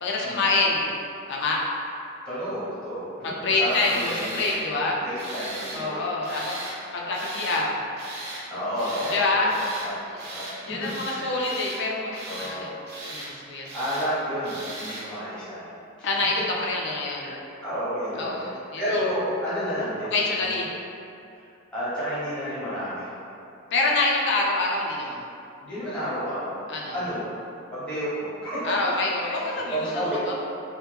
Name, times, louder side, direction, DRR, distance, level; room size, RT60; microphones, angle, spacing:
voice 1, 0.0-0.9 1.3-1.6 3.2-5.0 5.7-6.5 6.9-7.8 9.1-9.5 10.1-10.2 10.6-12.7 13.0-13.7 16.0-16.4 16.7-17.3 18.2-19.0 20.1-20.7 23.7-25.2 26.7-27.0 28.6-30.3, left 3 dB, 60° left, -2 dB, 0.5 m, -26 dB
voice 2, 2.2-4.5 4.9-6.0 6.3-6.4 7.0-7.4 8.5-10.0 10.3-11.5 12.2-12.7 13.7-15.7 17.2-17.3 17.6-18.5 18.8-20.6 21.7-23.1 25.6-26.6 26.9-27.2 27.7-28.8 29.4-30.3, equal, 5° left, -12 dB, 1.1 m, -31 dB
Tools, 3.7-4.6 5.1-5.8 6.2-6.8 7.1-7.6 8.0-8.4 8.7-9.2 9.5-9.9 10.2-10.6 10.8-11.8 12.1-12.5 12.9-13.3 13.6-14.1 14.4-15.1, right 2 dB, 55° right, 0.6 m, -38 dB
3.1 x 2.1 x 3.3 m, 2.6 s
head